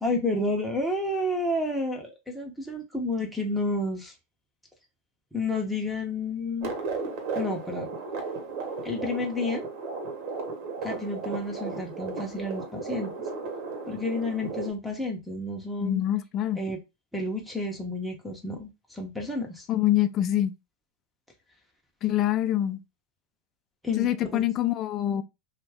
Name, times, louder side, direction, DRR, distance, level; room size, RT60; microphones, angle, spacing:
voice 1, 0.0-4.1 5.3-6.7 7.3-7.9 8.8-9.6 10.8-13.1 13.9-16.0 16.5-16.8 17.1-19.7 23.8-24.1 24.3-24.4, left 2 dB, ahead, 0.7 m, -30 dB
sound 1, 6.6-14.7, right 4 dB, 55° right, 1.0 m, -35 dB
voice 2, 15.8-16.6 19.7-20.5 22.0-22.8 24.0-25.2, left 12 dB, 35° left, 0.4 m, -25 dB
2.6 x 2.3 x 3.4 m
hypercardioid pair, 125°, 0 cm